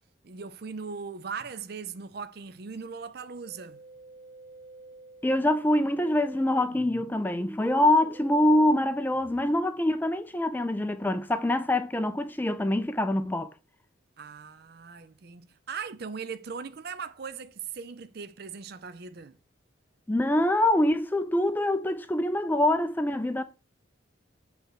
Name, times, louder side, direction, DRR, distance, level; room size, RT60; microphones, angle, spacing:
voice 1, 0.2-3.8 14.2-19.4, right 5 dB, 50° right, 0.5 m, -39 dB
Musical instrument, 3.4-9.5, right 1 dB, 20° right, 1.3 m, -49 dB
voice 2, 5.2-13.5 20.1-23.4, left 1 dB, 10° left, 0.4 m, -25 dB
8.0 x 3.3 x 6.5 m
head